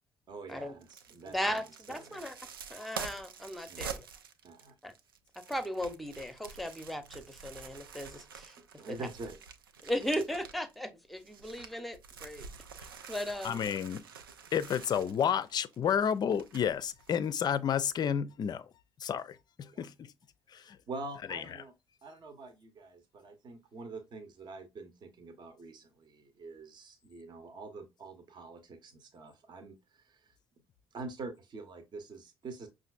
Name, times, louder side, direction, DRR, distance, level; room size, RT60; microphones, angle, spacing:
voice 1, 0.3-2.2 3.7-4.0 4.4-4.7 8.6-9.4 19.7-19.9 20.9-21.7 22.0-30.3 30.9-32.7, right 3 dB, 40° right, 0.8 m, -46 dB
sound 1, 0.8-10.8 11.1-17.1 17.5-17.6, right 6 dB, 80° right, 0.4 m, -47 dB
voice 2, 1.3-2.4 2.7-4.1 4.8-4.9 5.5-8.5 8.9-9.1 9.8-12.5 13.1-13.6, equal, ahead, 0.7 m, -37 dB
voice 3, 13.4-14.0 14.5-18.7 19.0-20.1 20.5-20.8 21.3-21.4, left 8 dB, 35° left, 0.4 m, -31 dB
5.8 x 2.5 x 2.3 m
figure-of-eight pair, 50°, 12 cm